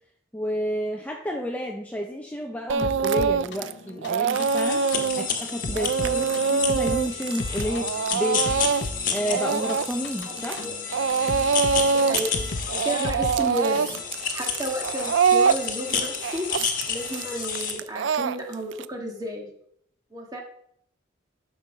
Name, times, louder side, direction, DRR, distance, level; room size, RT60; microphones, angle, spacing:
voice 1, 0.3-4.8 5.1-7.9 8.1-8.4 9.1-10.6, equal, 10° left, 1 dB, 0.7 m, -30 dB
Speech / Crying sobbing, 2.7-3.7 4.0-10.7 10.9-12.3 12.6-18.8, right 6 dB, 75° right, 0.4 m, -24 dB
sound 1, 2.8-14.0, left 2 dB, 65° left, 0.9 m, -36 dB
sound 2, 4.3-17.8, left 6 dB, 45° left, 1.5 m, -31 dB
voice 2, 10.3-10.7 11.9-12.3 12.7-14.0 14.3-16.5 16.9-19.5 20.1-20.4, right 1 dB, 20° right, 0 dB, 1.8 m, -32 dB
12.0 x 5.6 x 5.2 m, 0.69 s
head